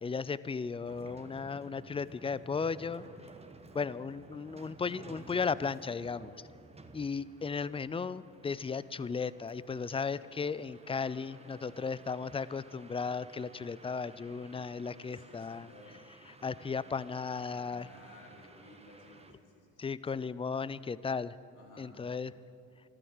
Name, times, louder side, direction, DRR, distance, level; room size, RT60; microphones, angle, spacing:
voice 1, 0.0-3.1 3.7-6.5 6.9-15.7 16.4-17.9 19.8-21.3 21.8-22.3, left 5 dB, 15° left, 18 dB, 0.4 m, -35 dB
sound 1, 0.9-19.3, right 3 dB, 20° right, 1.3 m, -55 dB
voice 2, 10.8-12.0 15.1-16.0 17.5-20.1 21.5-22.0, left 2 dB, 60° left, -2 dB, 4.2 m, -57 dB
14.0 x 12.5 x 7.3 m, 2.6 s
hypercardioid pair, 60°, 34 cm